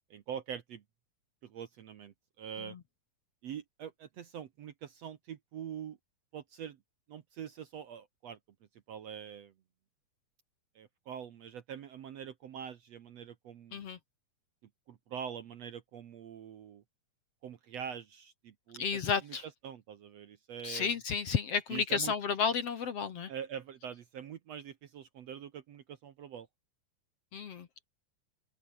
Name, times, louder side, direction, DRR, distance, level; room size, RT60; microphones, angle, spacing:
voice 1, 0.1-0.8 1.4-2.8 3.4-6.0 6.3-6.8 7.1-8.4 8.9-9.5 10.8-13.8 14.9-16.8 17.4-18.8 19.2-19.3 19.6-20.9 21.7-22.1 23.3-26.5, right 8 dB, 60° right, 2.0 m, -44 dB
voice 2, 18.8-19.4 20.6-23.3 27.3-27.7, left 6 dB, 55° left, 2.1 m, -32 dB
open air
omnidirectional pair, 4.1 m